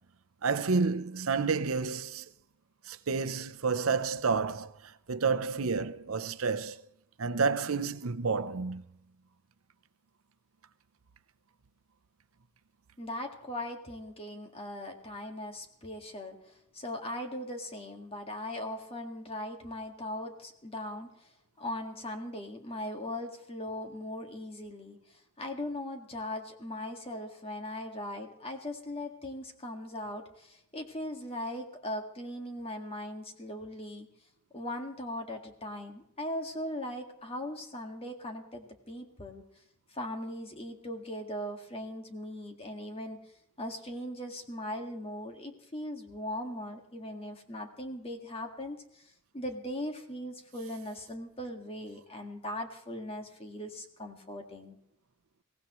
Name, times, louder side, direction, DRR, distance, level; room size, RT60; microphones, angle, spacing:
voice 1, 0.4-2.3 2.9-6.8 7.2-8.8, right 4 dB, 80° right, 0.7 m, -30 dB
voice 2, 13.0-21.3 21.6-34.1 34.5-39.4 39.9-43.2 43.6-49.0 49.3-54.8, left 1 dB, 25° left, 1.9 m, -39 dB
23.0 x 17.5 x 3.1 m
head